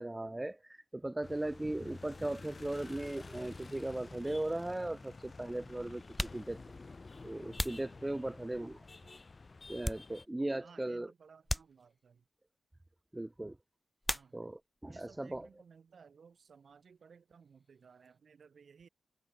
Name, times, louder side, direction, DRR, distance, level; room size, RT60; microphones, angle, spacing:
voice 1, 0.0-6.6 7.2-8.8 9.7-11.1 13.1-13.6 14.3-15.5, right 1 dB, 15° right, 0.4 m, -38 dB
sound 1, 1.2-10.3, left 3 dB, 35° left, 1.3 m, -50 dB
sound 2, 6.1-8.6 9.2-10.6 10.8-11.0 11.4-12.3 14.0-14.8 15.1-15.8 16.0-18.2, left 1 dB, 5° left, 0.9 m, -41 dB
voice 2, 10.6-12.2 14.1-14.3 14.9-18.9, right 6 dB, 60° right, 1.7 m, -59 dB
wide cardioid pair, 120°, 0 cm